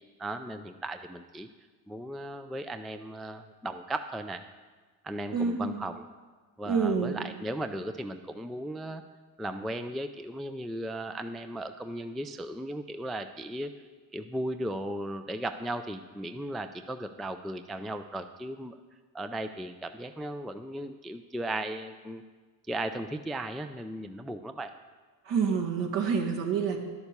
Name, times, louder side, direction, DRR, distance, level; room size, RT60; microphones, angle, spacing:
voice 1, 0.2-1.5 1.9-4.4 5.0-6.0 6.6-9.0 9.4-13.7 14.1-18.8 19.1-22.2 22.7-24.7, right 1 dB, ahead, 9 dB, 0.3 m, -36 dB
voice 2, 5.3-5.8 6.7-7.3 25.3-26.8, right 5 dB, 65° right, 2 dB, 1.9 m, -28 dB
10.5 x 7.2 x 6.7 m, 1.4 s
supercardioid pair, 80°, 48 cm